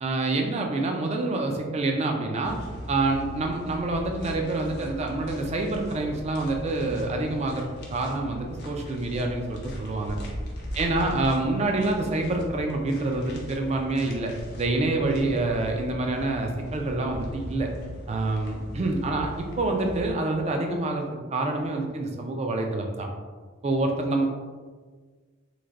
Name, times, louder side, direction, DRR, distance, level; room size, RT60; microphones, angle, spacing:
voice 1, 0.0-2.6 2.9-7.6 7.9-10.2 10.7-17.7 18.1-23.1 23.6-24.3, right 2 dB, 30° right, 3 dB, 0.3 m, -27 dB
sound 1, 2.4-20.1, equal, 55° left, 0.6 m, -39 dB
3.2 x 2.6 x 2.4 m, 1.5 s
head